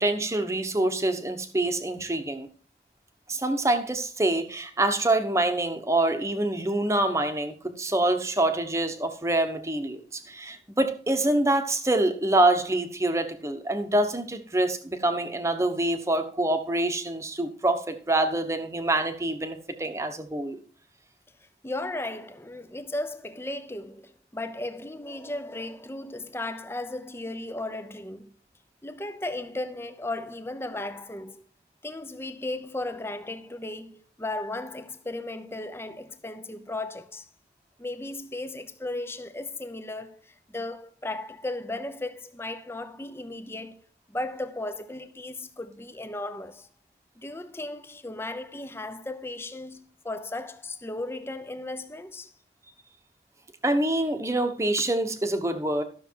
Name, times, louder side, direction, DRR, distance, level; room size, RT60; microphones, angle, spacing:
voice 1, 0.0-2.5 3.3-20.6 53.6-55.8, right 1 dB, 15° right, 1.1 m, -26 dB
voice 2, 21.6-28.3 28.8-31.4 31.8-37.3 37.8-43.8 44.1-46.7 47.2-52.3, left 2 dB, 15° left, 0.7 m, -35 dB
12.5 x 6.6 x 4.6 m
head